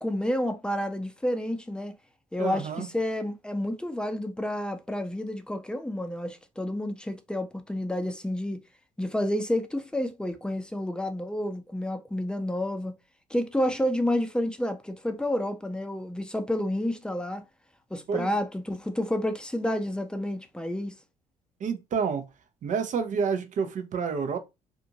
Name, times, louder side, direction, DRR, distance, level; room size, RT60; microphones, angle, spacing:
voice 1, 0.0-2.0 2.3-8.6 9.0-12.9 13.3-17.4 17.9-20.9, left 1 dB, 5° left, 0.6 m, -30 dB
voice 2, 2.4-2.9 18.1-18.3 21.6-22.2 22.6-24.4, right 6 dB, 50° right, 0.7 m, -29 dB
2.6 x 2.5 x 2.8 m
hypercardioid pair, 55°, 17 cm